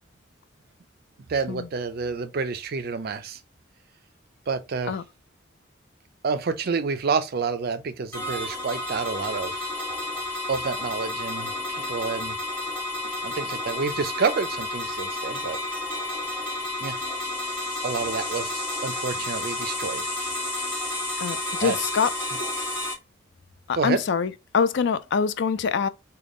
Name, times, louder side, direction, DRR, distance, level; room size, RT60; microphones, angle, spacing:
voice 1, 1.3-3.4 4.5-4.9 6.2-9.7 10.5-12.4 13.0-15.6 16.8-17.0 17.8-18.5 18.8-20.0 21.6-21.9 23.7-24.0, right 5 dB, 55° right, 0.5 m, -29 dB
sound 1, 8.1-22.9, left 2 dB, 10° left, 1.3 m, -31 dB
voice 2, 21.2-22.1 23.7-25.9, left 6 dB, 65° left, 0.4 m, -24 dB
3.5 x 2.2 x 3.6 m
head